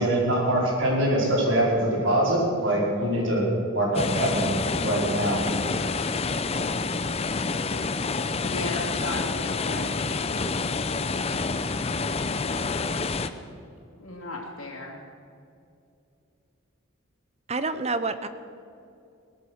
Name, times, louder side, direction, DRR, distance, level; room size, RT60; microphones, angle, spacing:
voice 1, 0.0-4.5 4.8-5.4 6.5-6.6 11.7-11.8, right 1 dB, 65° right, -3 dB, 4.9 m, -24 dB
sound 1, 3.9-13.3, left 4 dB, 30° left, 0.6 m, -28 dB
voice 2, 8.4-10.5 14.0-15.0, left 2 dB, 80° left, -5 dB, 2.6 m, -36 dB
voice 3, 17.5-18.3, right 3 dB, 30° right, 12 dB, 0.7 m, -28 dB
18.0 x 12.5 x 6.3 m, 2.6 s
head